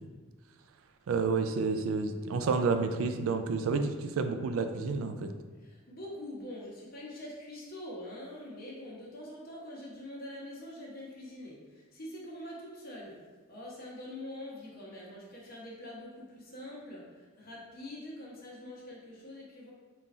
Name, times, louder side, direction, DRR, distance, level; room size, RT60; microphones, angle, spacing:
voice 1, 1.1-5.3, right 4 dB, 80° right, 8 dB, 0.4 m, -30 dB
voice 2, 5.6-13.1 13.5-19.7, left 1 dB, 45° left, -4 dB, 1.0 m, -44 dB
3.8 x 2.5 x 4.2 m, 1.4 s
head